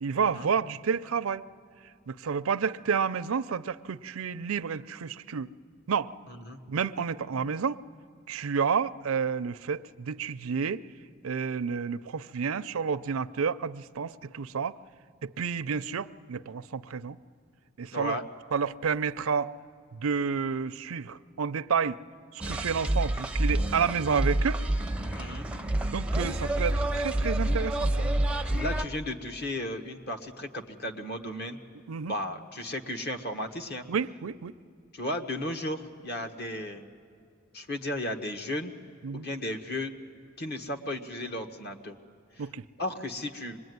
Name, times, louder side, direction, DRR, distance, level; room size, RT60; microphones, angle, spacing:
voice 1, 0.0-1.4 2.1-5.5 5.9-6.1 6.7-7.8 8.3-10.8 11.2-14.8 15.2-17.2 17.8-18.2 18.5-19.5 19.9-22.0 22.3-24.6 25.9-28.1 31.9-32.2 33.9-34.5 39.0-39.3 42.4-42.6, right 6 dB, 85° right, 14 dB, 0.5 m, -30 dB
voice 2, 17.9-18.2 25.1-25.5 28.6-31.6 32.1-33.8 34.9-36.9 37.5-38.7 39.1-39.9 40.4-42.0 42.8-43.6, left 1 dB, 50° left, 5 dB, 1.4 m, -34 dB
sound 1, 22.4-28.8, right 1 dB, 5° right, 0.6 m, -28 dB
25.0 x 20.5 x 9.5 m, 2.4 s
head